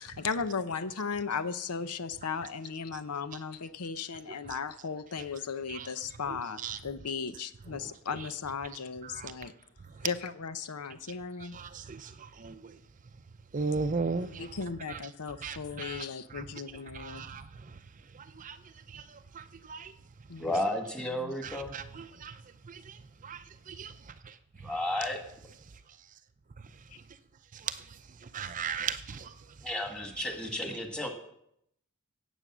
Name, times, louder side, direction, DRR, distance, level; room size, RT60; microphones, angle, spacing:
voice 1, 0.0-9.5 10.0-11.6 14.1-17.3 20.3-20.5 21.2-21.3, left 5 dB, 85° left, 0.8 m, -36 dB
voice 2, 6.3-6.8 9.0-9.3 11.5-12.7 13.5-14.5 14.9-15.0 15.4-16.4 16.9-17.4 18.4-18.6 18.9-19.0 19.3-19.9 21.4-22.4 22.7-23.0 23.2-23.9 27.6-27.8 28.3-29.3, right 5 dB, 35° right, 0.5 m, -37 dB
voice 3, 20.4-21.7 24.6-25.2 29.6-31.1, left 1 dB, 5° left, 1.8 m, -32 dB
17.0 x 8.1 x 6.2 m
head